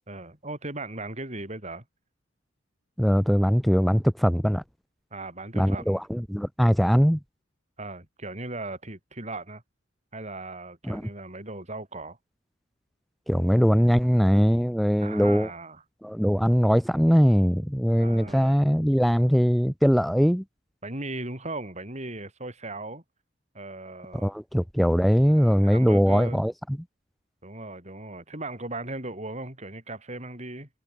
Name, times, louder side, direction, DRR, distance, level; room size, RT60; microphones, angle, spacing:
voice 1, 0.1-1.8 5.1-6.0 7.8-9.6 10.1-12.2 15.0-15.8 18.0-18.6 20.8-23.0 23.5-24.3 25.3-26.4 27.4-30.7, right 2 dB, 35° right, 6.8 m, -37 dB
voice 2, 3.0-4.6 5.5-7.2 10.9-11.0 13.3-15.5 16.0-20.4 24.2-26.5, equal, ahead, 2.7 m, -21 dB
head